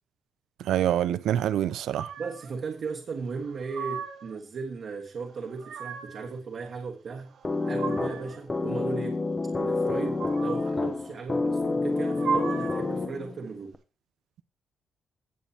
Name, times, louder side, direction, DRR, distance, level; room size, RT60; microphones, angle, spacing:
voice 1, 0.6-2.1, right 11 dB, 80° right, 0.6 m, -25 dB
sound 1, 1.9-2.5 3.4-4.4 5.3-6.3 7.3-8.4 9.9-10.8 11.9-12.9, right 6 dB, 60° right, 1.5 m, -36 dB
voice 2, 2.2-7.3 7.7-9.2 9.6-13.8, right 5 dB, 45° right, 1.5 m, -36 dB
sound 2, 7.4-13.4, left 3 dB, 20° left, 0.8 m, -28 dB
17.0 x 7.3 x 2.9 m
cardioid pair, 160°, 0 cm